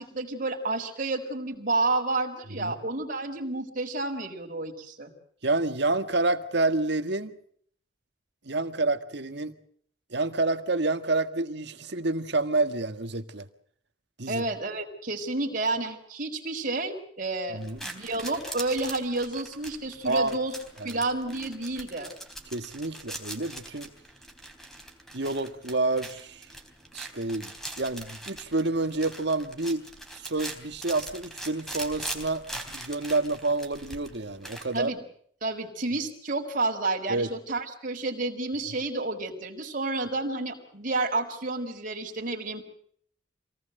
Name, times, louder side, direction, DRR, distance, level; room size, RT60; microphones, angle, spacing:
voice 1, 0.0-5.1 14.3-20.5 20.8-22.1 34.7-35.0 35.4-42.7, right 2 dB, 45° right, 3 dB, 4.2 m, -30 dB
voice 2, 5.4-7.3 8.4-9.6 10.1-13.5 14.2-14.4 17.5-17.9 20.0-20.4 20.8-21.0 22.5-23.9 25.1-26.5 26.9-29.8 30.1-34.9 37.1-37.3, right 2 dB, 65° right, 9 dB, 1.7 m, -28 dB
sound 1, 17.6-34.8, right 1 dB, ahead, 3.7 m, -42 dB
26.5 x 18.5 x 7.8 m, 0.62 s
head